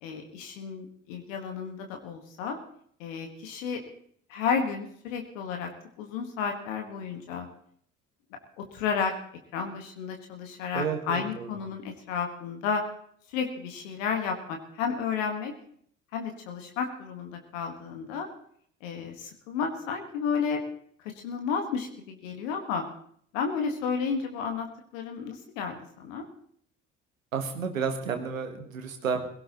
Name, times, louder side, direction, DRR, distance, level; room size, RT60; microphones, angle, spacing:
voice 1, 0.0-2.6 3.0-3.8 4.3-5.7 6.0-7.5 8.6-9.1 9.5-12.8 13.3-15.5 16.1-18.3 18.8-20.6 21.0-22.8 23.3-24.7 24.9-26.2, left 6 dB, 75° left, 4 dB, 1.6 m, -32 dB
voice 2, 10.7-11.5 27.3-29.2, right 6 dB, 85° right, 6 dB, 1.4 m, -31 dB
20.5 x 17.0 x 3.0 m, 0.63 s
figure-of-eight pair, 45°, 39 cm